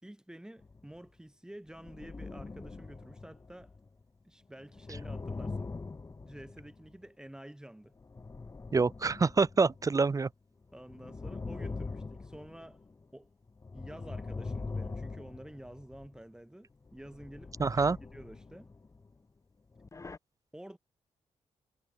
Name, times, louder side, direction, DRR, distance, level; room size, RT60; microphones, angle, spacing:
voice 1, 0.0-3.8 4.2-5.7 6.2-8.0 10.7-12.9 13.1-13.3 13.7-18.7 20.5-20.8, right 1 dB, 5° right, 4.4 m, -50 dB
sound 1, 0.6-1.0 1.7-4.0 4.6-7.0 8.0-10.1 10.6-13.0 13.5-16.2 16.9-19.2 19.7-20.2, left 3 dB, 25° left, 6.5 m, -43 dB
voice 2, 8.7-10.3 17.6-18.0, right 4 dB, 30° right, 1.4 m, -26 dB
cardioid pair, 105°, 11 cm